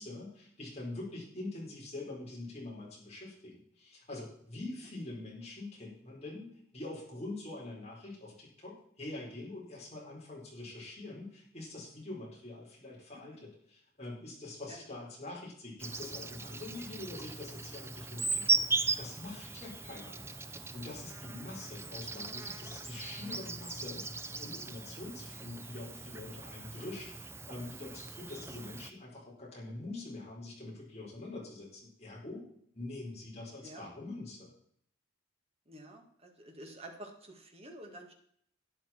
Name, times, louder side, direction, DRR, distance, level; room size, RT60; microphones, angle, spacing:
voice 1, 0.0-32.5 32.7-34.5, left 2 dB, 30° left, -4 dB, 4.5 m, -45 dB
Insect, 15.8-28.9, right 4 dB, 10° right, 0.5 m, -38 dB
voice 2, 35.7-38.1, right 1 dB, 30° right, 3 dB, 1.9 m, -49 dB
12.0 x 10.0 x 4.5 m, 0.67 s
head